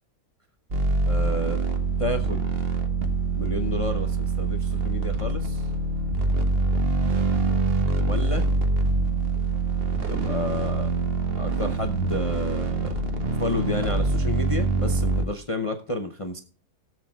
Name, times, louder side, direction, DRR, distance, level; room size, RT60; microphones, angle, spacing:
sound 1, 0.7-15.3, right 3 dB, 40° right, 1.2 m, -24 dB
voice 1, 1.1-1.6 2.0-2.5 3.4-5.6 8.1-8.5 10.1-10.9 11.3-12.9 13.4-16.4, left 2 dB, 50° left, 5 dB, 0.4 m, -31 dB
18.5 x 7.5 x 2.3 m, 0.42 s
omnidirectional pair, 1.7 m